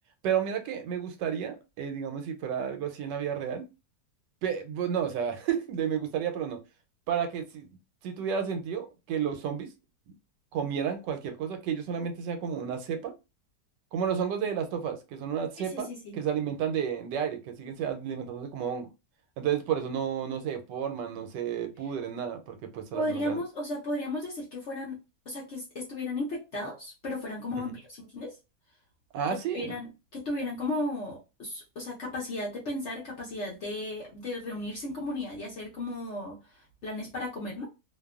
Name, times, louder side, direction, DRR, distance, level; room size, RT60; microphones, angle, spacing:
voice 1, 0.2-3.6 4.4-6.6 7.1-7.7 8.0-9.7 10.5-13.1 13.9-15.9 16.1-18.9 19.4-23.4 27.6-27.7 29.1-29.7, right 8 dB, 85° right, 1.2 m, -31 dB
voice 2, 15.7-16.2 22.9-25.0 25.3-28.4 29.5-37.7, left 1 dB, 60° left, 0.8 m, -35 dB
2.8 x 2.2 x 2.3 m
omnidirectional pair, 1.9 m